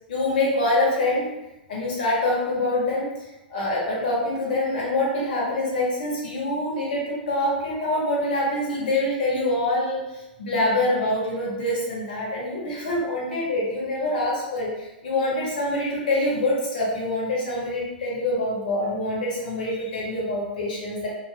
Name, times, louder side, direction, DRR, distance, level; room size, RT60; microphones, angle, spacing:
voice 1, 0.1-1.3 1.7-21.2, left 1 dB, 65° left, -5 dB, 1.3 m, -25 dB
3.5 x 2.2 x 2.4 m, 0.97 s
figure-of-eight pair, 100°, 5 cm